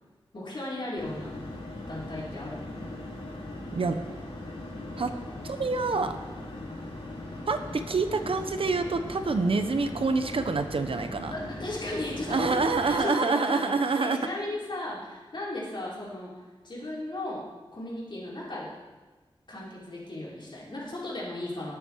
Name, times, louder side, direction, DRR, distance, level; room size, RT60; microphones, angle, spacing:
voice 1, 0.3-1.3 1.9-2.8 11.3-17.5 17.7-18.7 19.5-21.8, left 1 dB, 55° left, -6 dB, 4.7 m, -36 dB
sound 1, 1.0-12.9, left 1 dB, 85° left, 4.2 m, -39 dB
voice 2, 5.4-6.2 7.5-11.3 12.3-14.2, right 4 dB, 70° right, 8 dB, 1.0 m, -27 dB
19.0 x 8.5 x 4.7 m, 1.3 s
wide cardioid pair, 90°, 10 cm